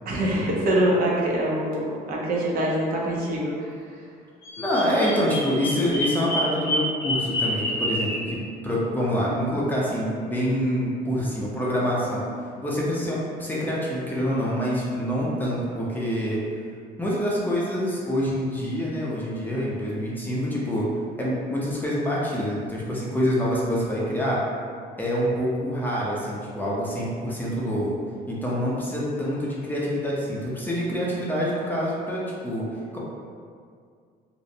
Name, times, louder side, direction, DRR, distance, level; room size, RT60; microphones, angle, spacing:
voice 1, 0.1-3.5, right 1 dB, 60° right, -4 dB, 0.6 m, -24 dB
Bird vocalization bird call bird song, 4.4-8.3, equal, 80° left, 0.7 m, -28 dB
voice 2, 4.6-12.3 12.6-16.4 17.0-20.9 21.2-24.4 25.0-28.0 28.3-32.7 32.9-33.0, equal, 10° left, -6 dB, 0.5 m, -26 dB
2.5 x 2.0 x 2.7 m, 2.1 s
cardioid pair, 110°, 17 cm